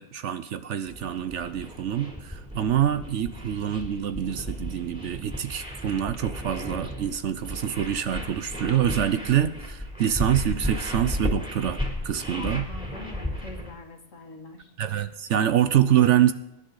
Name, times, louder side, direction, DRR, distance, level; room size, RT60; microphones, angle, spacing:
voice 1, 0.0-12.7 14.8-16.3, right 10 dB, 65° right, 12 dB, 0.9 m, -25 dB
sound 1, 0.9-13.7, left 1 dB, 5° right, 3.1 m, -34 dB
voice 2, 12.3-14.7, left 4 dB, 60° left, 4 dB, 2.2 m, -42 dB
22.5 x 10.5 x 3.9 m, 0.95 s
omnidirectional pair, 1.5 m